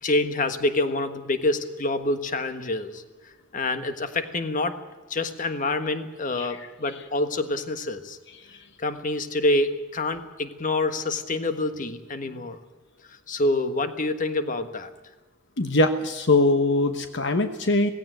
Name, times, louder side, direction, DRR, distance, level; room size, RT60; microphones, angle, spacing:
voice 1, 0.0-3.0 3.5-4.8 5.1-8.2 8.8-12.6 13.3-14.9, left 2 dB, 45° left, 9 dB, 1.5 m, -26 dB
voice 2, 15.6-17.9, left 2 dB, 65° left, 8 dB, 1.1 m, -22 dB
18.0 x 16.5 x 9.3 m, 1.2 s
head